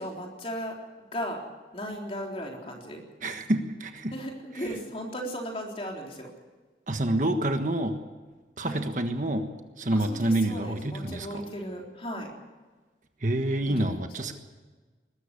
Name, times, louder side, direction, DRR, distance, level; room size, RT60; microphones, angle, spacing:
voice 1, 0.0-1.4 1.7-3.0 4.1-6.3 8.6-8.9 9.9-12.3 13.6-14.3, equal, 35° left, 0 dB, 3.8 m, -36 dB
voice 2, 3.2-4.1 6.9-8.0 8.6-9.5 9.8-11.4 13.2-14.3, right 1 dB, 45° right, 6 dB, 1.4 m, -27 dB
21.0 x 14.0 x 9.8 m, 1.3 s
head